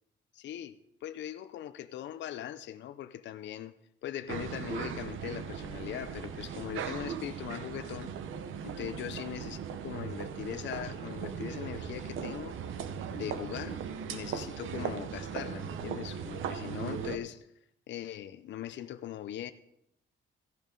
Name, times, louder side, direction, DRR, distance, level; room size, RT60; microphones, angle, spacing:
voice 1, 0.3-3.7 4.0-8.1 8.6-12.6 13.1-13.8 14.1-17.5 17.9-19.5, left 11 dB, 65° left, 0.6 m, -40 dB
sound 1, 4.3-17.2, right 7 dB, 80° right, 0.9 m, -38 dB
14.5 x 10.5 x 3.8 m
cardioid pair, 170°, 20 cm